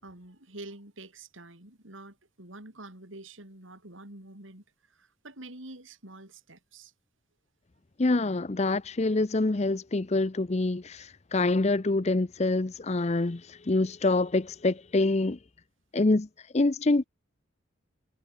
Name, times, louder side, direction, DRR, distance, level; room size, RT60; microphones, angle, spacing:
voice 1, 0.0-6.9, right 2 dB, 75° right, 5.3 m, -47 dB
voice 2, 8.0-15.4 15.9-16.3 16.5-17.0, left 2 dB, 35° left, 0.6 m, -26 dB
head